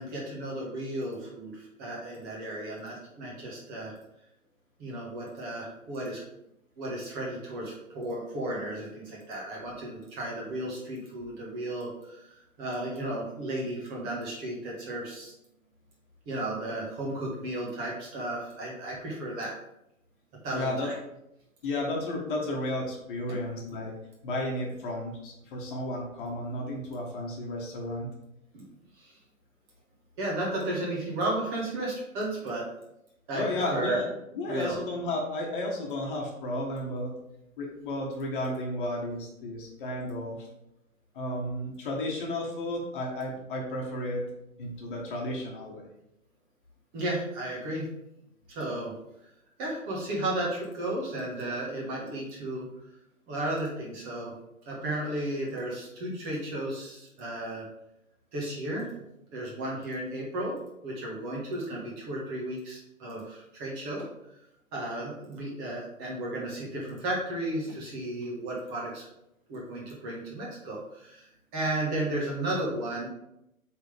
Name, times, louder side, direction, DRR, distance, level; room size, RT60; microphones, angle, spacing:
voice 1, 0.0-3.9 4.8-6.2 6.8-12.2 12.6-15.3 16.2-19.5 20.4-21.0 28.5-28.6 29.0-29.1 30.2-32.6 33.3-34.0 34.5-34.8 46.9-47.9 48.5-48.9 49.6-52.7 53.3-54.3 54.6-57.7 58.3-60.5 60.8-64.0 64.7-69.0 69.5-71.3 71.5-73.1, right 1 dB, 20° right, -3 dB, 1.7 m, -34 dB
voice 2, 20.5-20.9 21.6-23.9 24.2-28.1 33.3-34.0 34.3-37.1 37.6-40.5 41.1-44.2 44.6-45.8, left 1 dB, 35° left, -1 dB, 1.6 m, -33 dB
7.8 x 4.0 x 3.5 m, 0.82 s
figure-of-eight pair, 135°, 42 cm